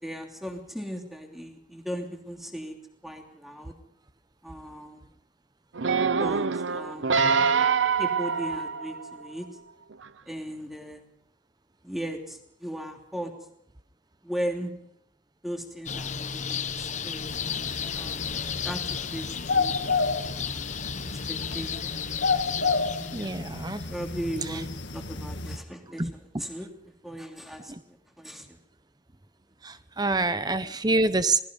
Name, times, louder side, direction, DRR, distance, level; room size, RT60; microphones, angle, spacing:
voice 1, 0.0-2.8 3.0-3.7 4.4-5.1 6.0-7.2 8.0-9.5 10.3-11.0 11.8-13.3 14.2-14.7 15.4-17.3 17.9-18.3 18.6-19.8 20.4-20.7 21.0-22.0 23.1-23.4 23.9-26.7 27.0-28.6 30.6-30.7, equal, ahead, 2 dB, 2.9 m, -37 dB
sound 1, 5.8-9.3 9.9-10.0, right 5 dB, 85° right, 0.7 m, -25 dB
sound 2, 15.9-23.4, left 7 dB, 40° left, 0.9 m, -34 dB
sound 3, 17.3-25.6, left 4 dB, 70° left, 1.8 m, -31 dB
voice 2, 23.0-23.8 24.5-24.6 26.0-26.1 27.7-27.8 29.6-31.4, right 3 dB, 20° right, 13 dB, 0.8 m, -26 dB
27.0 x 19.5 x 5.4 m, 0.72 s
head